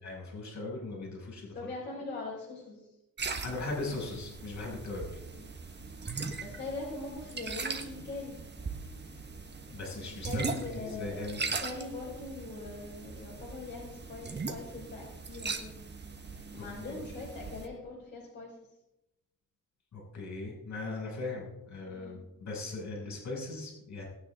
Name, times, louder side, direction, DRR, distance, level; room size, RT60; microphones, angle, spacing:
voice 1, 0.0-1.6 3.4-5.2 9.6-11.4 16.8-17.0 19.9-24.1, left 3 dB, 55° left, -2 dB, 6.2 m, -39 dB
voice 2, 1.5-2.9 5.2-5.5 6.4-8.4 10.2-15.7 16.5-18.6 21.8-22.2, left 3 dB, 30° left, -5 dB, 4.8 m, -42 dB
sound 1, 3.2-17.7, right 4 dB, 30° right, 1.4 m, -40 dB
20.0 x 9.5 x 3.7 m, 0.92 s
cardioid pair, 130°, 34 cm